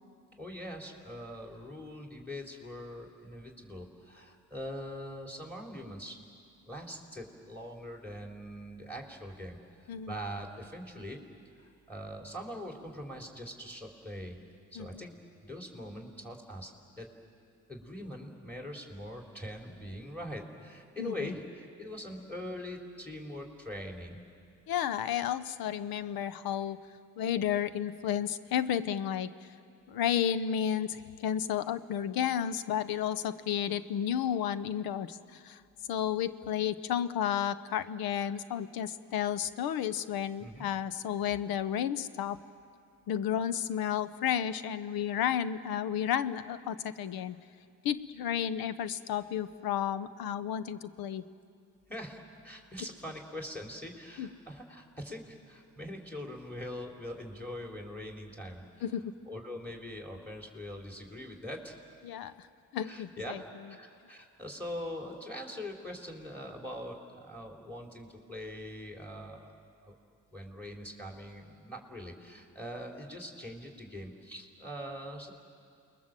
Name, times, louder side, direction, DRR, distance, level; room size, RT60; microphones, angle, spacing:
voice 1, 0.4-6.2 6.7-9.6 9.8-11.2 11.6-14.4 14.7-15.2 15.4-16.7 17.0-17.1 17.7-24.2 40.4-40.7 51.9-58.8 59.3-61.7 62.8-69.6 69.8-70.0 70.3-75.3, equal, 5° left, 1 dB, 3.9 m, -42 dB
voice 2, 14.7-15.1 21.0-21.3 24.7-26.8 27.2-29.3 29.9-35.6 35.9-42.4 43.1-47.4 47.8-51.2 54.2-54.3 58.8-59.1 62.0-62.5 62.7-63.4, left 9 dB, 85° left, 14 dB, 0.9 m, -32 dB
28.5 x 21.0 x 7.7 m, 2.4 s
supercardioid pair, 60°, 35 cm